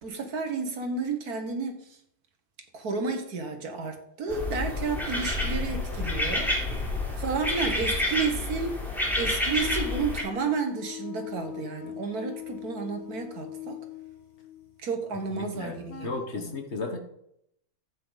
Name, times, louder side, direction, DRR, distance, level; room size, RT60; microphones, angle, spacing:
voice 1, 0.0-1.9 2.7-6.6 7.2-8.8 9.2-13.8 14.8-16.5, right 4 dB, 75° right, 5 dB, 1.9 m, -31 dB
sound 1, 4.3-10.2, left 2 dB, ahead, 3.8 m, -29 dB
sound 2, 9.6-16.1, left 11 dB, 75° left, 1.9 m, -42 dB
voice 2, 15.3-17.0, left 3 dB, 50° left, 4 dB, 1.7 m, -34 dB
14.0 x 8.6 x 4.0 m, 0.76 s
omnidirectional pair, 1.6 m